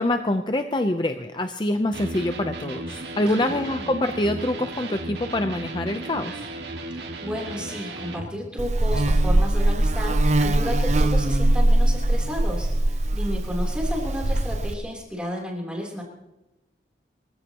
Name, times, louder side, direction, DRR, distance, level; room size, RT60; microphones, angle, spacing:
voice 1, 0.0-6.5, left 1 dB, 25° left, 7 dB, 0.6 m, -25 dB
Electric guitar, 1.9-8.3, right 2 dB, 80° right, 1.9 m, -35 dB
voice 2, 3.3-3.8 6.9-16.0, equal, 5° right, -2 dB, 3.3 m, -33 dB
Buzz, 8.6-14.7, right 1 dB, 40° right, 0.7 m, -21 dB
24.0 x 15.5 x 3.0 m, 0.97 s
head